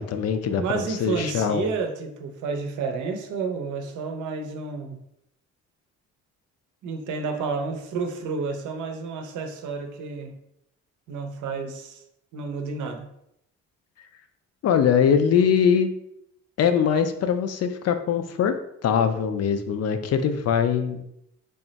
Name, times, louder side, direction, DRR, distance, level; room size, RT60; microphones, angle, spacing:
voice 1, 0.0-0.6 1.0-1.7 14.6-15.9 16.6-18.5 18.8-21.0, left 7 dB, 55° left, 9 dB, 0.5 m, -22 dB
voice 2, 0.6-5.0 6.8-10.3 11.1-12.0 12.3-13.1, right 4 dB, 80° right, 5 dB, 0.6 m, -30 dB
3.5 x 2.1 x 3.9 m, 0.77 s
cardioid pair, 90°, 30 cm